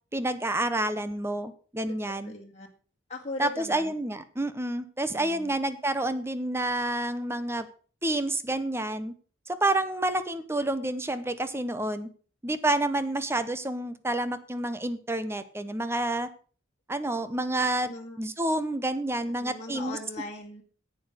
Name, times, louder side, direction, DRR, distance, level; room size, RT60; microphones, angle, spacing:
voice 1, 0.1-2.3 3.4-7.7 8.0-9.1 9.5-12.1 12.4-16.3 16.9-17.9 18.2-20.0, right 1 dB, 15° right, 12 dB, 0.8 m, -29 dB
voice 2, 2.0-2.7 3.1-3.9 5.1-5.5 17.8-18.2 19.4-20.6, left 3 dB, 35° left, -2 dB, 2.2 m, -39 dB
10.5 x 8.4 x 6.4 m, 0.41 s
head